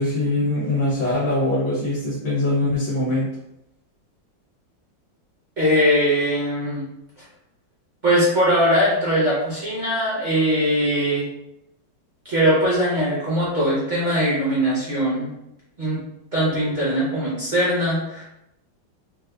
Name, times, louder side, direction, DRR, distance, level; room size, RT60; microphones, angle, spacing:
voice 1, 0.0-3.3, left 2 dB, 70° left, -7 dB, 1.7 m, -22 dB
voice 2, 5.6-6.8 8.0-11.2 12.2-15.3 15.8-16.0 16.3-18.2, equal, 35° right, -8 dB, 0.7 m, -21 dB
4.8 x 2.0 x 2.4 m, 0.85 s
omnidirectional pair, 2.1 m